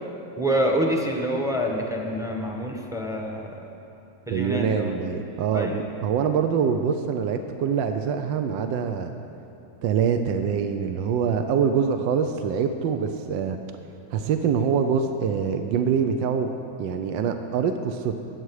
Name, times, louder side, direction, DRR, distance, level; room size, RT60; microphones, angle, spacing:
voice 1, 0.4-3.6 4.3-4.9 5.5-5.9, equal, 5° right, 0 dB, 0.8 m, -26 dB
voice 2, 4.3-9.1 9.8-13.6 14.1-16.5 16.8-18.1, right 7 dB, 75° right, 6 dB, 1.3 m, -24 dB
21.0 x 8.1 x 4.8 m, 2.9 s
omnidirectional pair, 2.1 m